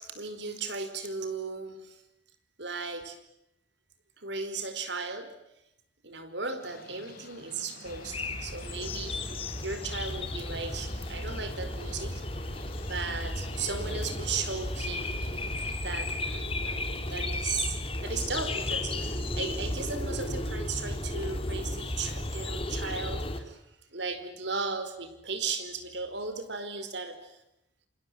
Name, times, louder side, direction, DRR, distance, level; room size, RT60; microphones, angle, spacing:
voice 1, 0.0-2.0 2.6-3.2 4.2-5.3 6.0-12.1 12.9-15.2 15.8-23.6 23.9-27.4, right 4 dB, 65° right, 9 dB, 4.8 m, -36 dB
sound 1, 6.6-15.8, left 3 dB, 50° left, 6.0 m, -50 dB
sound 2, 7.9-23.4, left 1 dB, 30° left, 3.2 m, -34 dB
28.5 x 26.5 x 7.8 m, 0.85 s
head